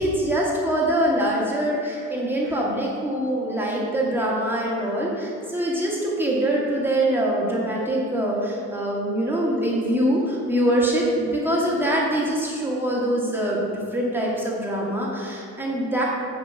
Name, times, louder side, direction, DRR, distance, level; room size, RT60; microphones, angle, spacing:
voice 1, 0.0-16.0, right 1 dB, 5° right, -5 dB, 1.9 m, -24 dB
10.0 x 5.2 x 7.5 m, 2.5 s
cardioid pair, 150°, 33 cm